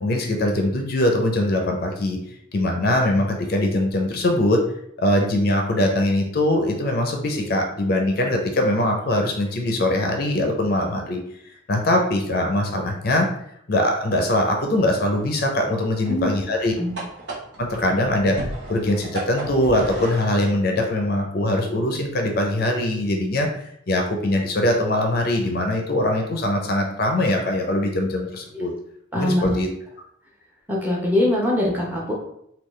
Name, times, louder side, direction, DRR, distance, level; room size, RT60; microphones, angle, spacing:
voice 1, 0.0-2.2 2.5-4.6 5.0-11.2 11.7-13.3 13.7-16.7 17.6-28.7 29.1-29.7, left 1 dB, 50° left, 2 dB, 0.5 m, -22 dB
sound 1, 15.1-20.3, right 2 dB, 60° right, 1.0 m, -36 dB
voice 2, 29.1-29.6 30.7-32.1, left 1 dB, 10° right, -3 dB, 0.8 m, -22 dB
3.8 x 2.3 x 3.1 m, 0.73 s
head